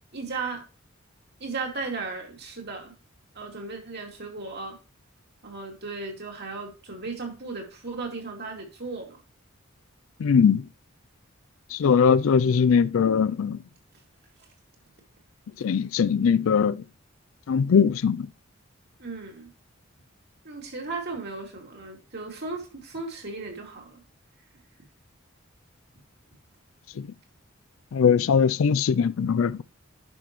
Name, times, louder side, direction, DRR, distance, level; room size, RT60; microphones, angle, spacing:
voice 1, 0.1-0.6 1.4-2.9 3.3-4.8 5.4-9.2 19.0-19.5 20.4-24.0, right 3 dB, 55° right, 2.6 m, -36 dB
voice 2, 10.2-10.6 11.7-13.6 15.6-16.8 17.5-18.3 27.0-27.1 27.9-29.6, left 6 dB, 75° left, 0.4 m, -21 dB
10.5 x 6.0 x 3.1 m
head